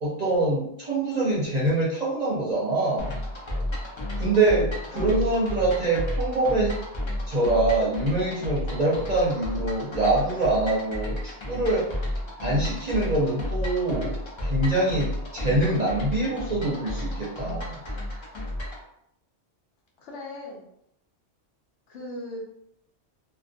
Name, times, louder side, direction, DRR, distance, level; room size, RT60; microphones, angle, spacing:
voice 1, 0.0-3.1 4.2-6.8 7.3-11.9 12.4-14.2 14.4-17.8, right 2 dB, 45° right, -5 dB, 0.6 m, -24 dB
sound 1, 3.0-18.8, left 1 dB, 50° left, 0.3 m, -32 dB
voice 2, 4.9-5.2 20.0-20.6 21.9-22.4, left 1 dB, 85° left, -1 dB, 1.0 m, -38 dB
2.4 x 2.2 x 2.5 m, 0.74 s
omnidirectional pair, 1.2 m